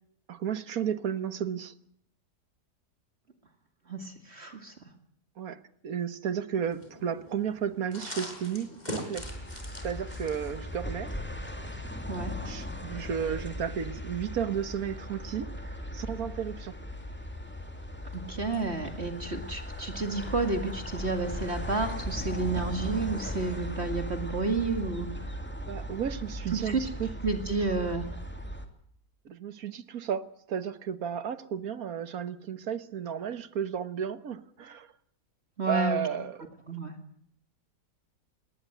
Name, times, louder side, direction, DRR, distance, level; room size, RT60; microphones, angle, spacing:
voice 1, 0.3-1.7 5.4-9.4 9.8-11.1 12.4-16.7 25.7-27.1 27.7-27.8 29.2-34.9 35.7-36.9, right 8 dB, 60° right, 13 dB, 1.6 m, -33 dB
voice 2, 3.9-4.7 12.1-12.3 18.1-25.1 26.7-26.8 27.2-28.0 35.6-36.0 36.7-36.9, right 3 dB, 40° right, 6 dB, 2.4 m, -30 dB
sound 1, 6.6-22.6, left 1 dB, 25° left, 4.9 m, -48 dB
sound 2, 9.2-28.7, equal, 5° left, 2.4 m, -38 dB
21.0 x 18.5 x 7.9 m, 0.69 s
omnidirectional pair, 1.8 m